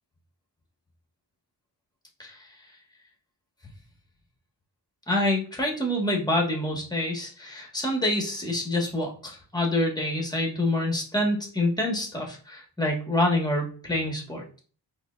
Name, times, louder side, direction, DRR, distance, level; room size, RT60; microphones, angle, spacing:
voice 1, 5.1-14.6, left 1 dB, 10° left, 1 dB, 1.3 m, -27 dB
3.9 x 2.9 x 2.4 m, 0.41 s
cardioid pair, 60°, 43 cm